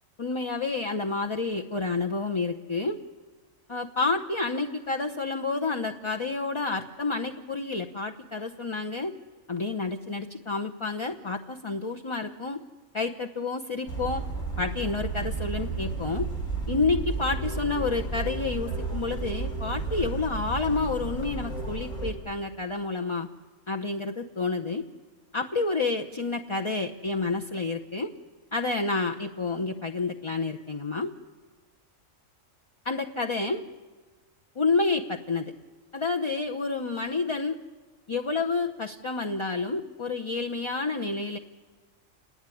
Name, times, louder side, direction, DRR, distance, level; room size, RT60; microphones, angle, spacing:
voice 1, 0.2-3.0 3.7-9.1 9.5-12.6 12.9-14.2 14.6-16.3 16.7-23.3 23.7-24.8 25.3-28.1 28.5-31.1 32.8-33.6 34.6-35.5 35.9-37.6 38.1-41.4, left 3 dB, 30° left, 3 dB, 0.7 m, -29 dB
sound 1, 13.9-22.1, right 4 dB, 70° left, 5.3 m, -32 dB
28.0 x 19.5 x 9.9 m, 1.4 s
omnidirectional pair, 1.4 m